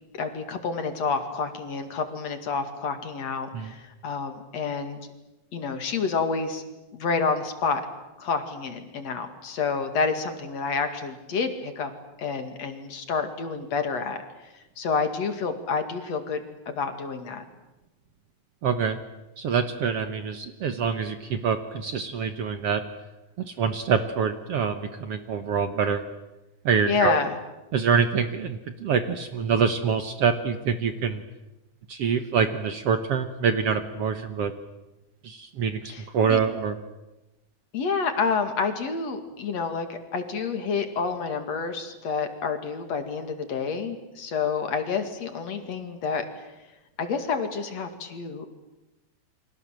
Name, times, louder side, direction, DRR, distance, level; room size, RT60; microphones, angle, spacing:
voice 1, 0.1-5.0 5.5-6.6 6.9-7.8 8.2-11.9 12.2-14.2 14.5-16.4 16.7-17.4 26.9-27.3 35.9-36.4 37.7-46.5 47.0-48.5, left 5 dB, 55° left, 7 dB, 3.2 m, -29 dB
voice 2, 18.6-19.0 19.4-22.8 23.6-26.0 26.7-27.2 27.7-31.2 31.9-34.5 35.2-35.8 36.1-36.8, right 6 dB, 60° right, 8 dB, 1.9 m, -25 dB
29.5 x 24.5 x 7.6 m, 1.0 s
omnidirectional pair, 3.7 m